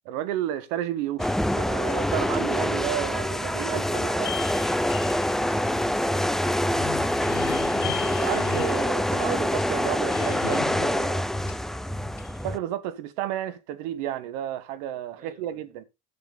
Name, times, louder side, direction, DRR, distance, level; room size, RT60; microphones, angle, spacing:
voice 1, 0.0-4.4 8.1-11.3 12.4-15.8, right 12 dB, 75° right, 1.2 m, -32 dB
sound 1, 1.2-12.6, left 1 dB, ahead, 0.5 m, -26 dB
sound 2, 1.9-2.8 4.2-9.9 10.3-11.9 12.2-12.6, left 16 dB, 55° left, 2.9 m, -44 dB
sound 3, 6.5-9.6 10.1-11.1, left 11 dB, 85° left, 1.4 m, -37 dB
voice 2, 15.2-15.8, right 5 dB, 40° right, 2.5 m, -51 dB
9.8 x 7.2 x 3.7 m
supercardioid pair, 95°, 20 cm